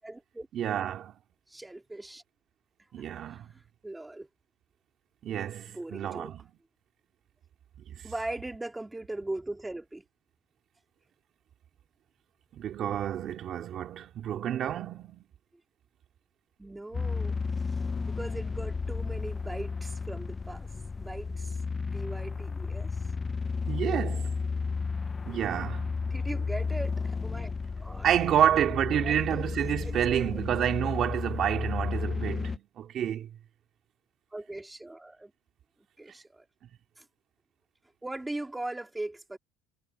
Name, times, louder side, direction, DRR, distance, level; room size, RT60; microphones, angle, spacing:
voice 1, 0.0-0.5 1.5-2.2 3.0-4.3 5.7-6.3 8.0-10.0 16.6-17.4 17.7-17.8 18.1-20.7 21.0-21.6 21.9-23.0 26.0-27.5 27.8-28.5 29.0-29.5 29.8-30.4 34.3-35.3 36.0-36.5 37.0-37.1 38.0-39.4, right 2 dB, 5° right, 2.1 m, -40 dB
voice 2, 0.5-1.1 2.9-3.5 5.2-6.4 7.9-8.0 12.5-15.2 23.7-24.3 25.3-26.0 28.0-33.3, right 10 dB, 40° right, 2.7 m, -29 dB
sound 1, 16.9-32.6, left 4 dB, 15° left, 0.5 m, -33 dB
cardioid pair, 155°, 0 cm